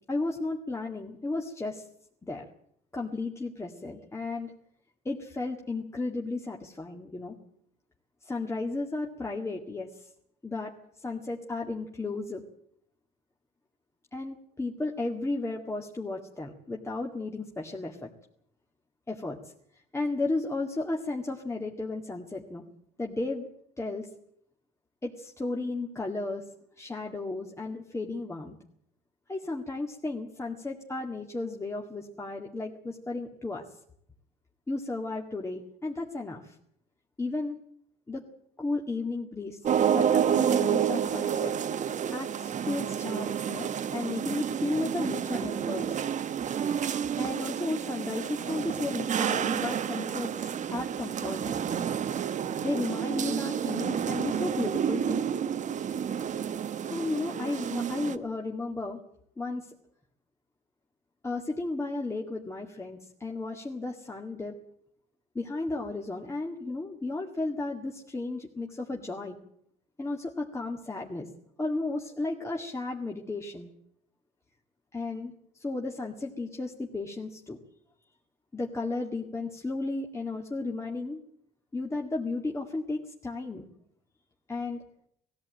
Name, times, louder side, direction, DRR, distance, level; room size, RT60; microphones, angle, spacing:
voice 1, 0.1-1.9 2.2-2.4 2.9-4.5 5.1-7.3 8.2-10.1 10.4-12.4 14.1-18.1 19.1-19.5 19.9-22.6 23.0-23.5 23.8-24.1 25.0-26.4 26.8-28.6 29.3-33.6 34.7-36.6 37.2-37.6 38.1-38.2 38.6-39.6 39.9-41.5 42.1-46.0 47.2-51.6 52.6-55.2 56.9-59.0 59.4-59.7 61.2-64.6 65.3-69.4 70.0-71.3 71.6-73.7 74.9-77.6 78.5-81.2 81.7-83.7 84.5-84.8, left 2 dB, 15° left, 1 dB, 2.1 m, -34 dB
sound 1, 39.6-58.2, right 8 dB, 45° right, 1.2 m, -29 dB
19.0 x 15.0 x 9.1 m, 0.70 s
cardioid pair, 110°, 17 cm